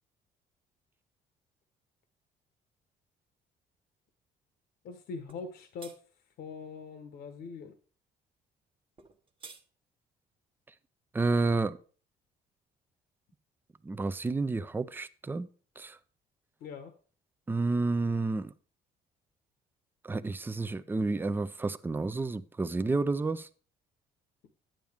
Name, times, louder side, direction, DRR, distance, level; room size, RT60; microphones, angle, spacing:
voice 1, 4.8-6.0 6.4-7.7 16.6-16.9, left 4 dB, 70° left, 1.1 m, -42 dB
sound 1, 5.3-5.5 5.8-6.0 9.0-9.6, right 4 dB, 30° right, 1.1 m, -49 dB
voice 2, 11.1-11.8 13.8-15.5 15.8-16.0 17.5-18.5 20.0-23.5, right 3 dB, 10° right, 0.5 m, -30 dB
10.5 x 8.9 x 3.5 m
cardioid pair, 110°, 17 cm